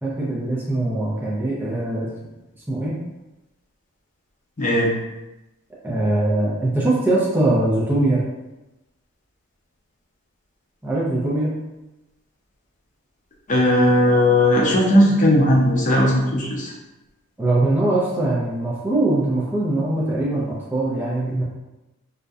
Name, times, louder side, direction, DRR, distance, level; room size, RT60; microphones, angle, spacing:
voice 1, 0.0-2.1 2.7-2.9 5.8-8.2 10.8-11.6 17.4-21.4, right 2 dB, 10° right, -7 dB, 0.4 m, -22 dB
voice 2, 4.6-4.9 13.5-16.7, left 1 dB, 40° left, -4 dB, 0.6 m, -17 dB
2.6 x 2.0 x 2.3 m, 1.0 s
head